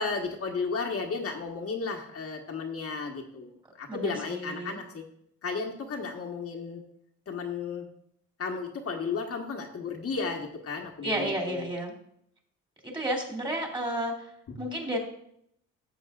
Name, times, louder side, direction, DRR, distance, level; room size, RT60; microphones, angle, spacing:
voice 1, 0.0-5.0 5.4-6.8 7.3-7.9 8.4-11.7 14.5-14.6, left 4 dB, 50° left, 1 dB, 1.4 m, -34 dB
voice 2, 3.9-4.7 11.0-11.9 12.8-14.1 14.6-15.0, right 1 dB, 15° right, 0 dB, 2.9 m, -31 dB
13.5 x 7.4 x 2.5 m, 0.70 s
cardioid pair, 90°, 30 cm